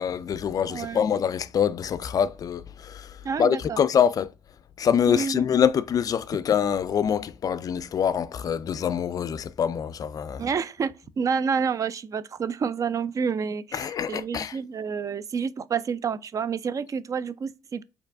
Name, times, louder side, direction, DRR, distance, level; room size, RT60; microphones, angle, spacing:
voice 1, 0.0-3.1 3.4-4.3 4.8-10.4 13.7-14.5, left 8 dB, 45° left, 0.3 m, -25 dB
voice 2, 0.7-1.0 3.2-3.8 5.1-5.5 10.4-17.8, right 6 dB, 40° right, 0.3 m, -29 dB
4.4 x 2.7 x 2.4 m
supercardioid pair, 60°, 8 cm